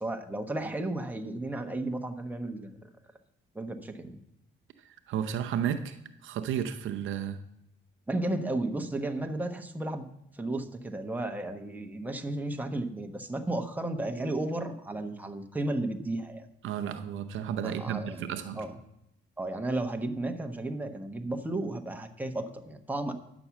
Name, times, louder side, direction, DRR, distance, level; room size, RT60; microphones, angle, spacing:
voice 1, 0.0-2.8 3.5-4.2 8.1-10.1 10.3-16.5 17.6-18.8 19.4-23.1, right 2 dB, 10° right, 4 dB, 1.1 m, -33 dB
voice 2, 5.1-6.0 6.2-7.4 16.6-18.6, right 9 dB, 80° right, 8 dB, 0.7 m, -32 dB
9.6 x 6.2 x 7.1 m, 0.82 s
cardioid pair, 90°, 20 cm